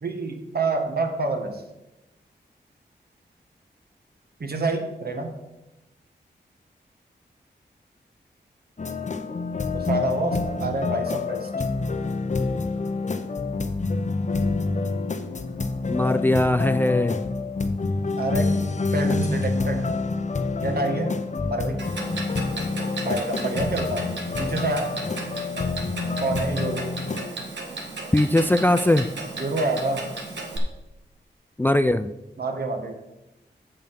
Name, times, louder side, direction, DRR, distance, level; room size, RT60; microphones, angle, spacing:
voice 1, 0.0-1.6 4.4-5.4 9.7-11.5 18.2-18.5 18.9-19.8 20.6-21.1 21.4-21.8 23.0-24.1 24.4-24.9 26.2-26.9 29.4-30.1 32.4-32.9, right 2 dB, 60° right, 4 dB, 1.6 m, -27 dB
sound 1, 8.8-27.3, left 3 dB, 40° left, 0.8 m, -27 dB
voice 2, 15.9-17.3 28.1-29.1 31.6-32.1, left 1 dB, 10° left, 12 dB, 0.4 m, -20 dB
Clock, 21.8-30.6, right 3 dB, 80° right, 1.7 m, -35 dB
7.3 x 6.8 x 5.9 m, 0.96 s
cardioid pair, 55°, 18 cm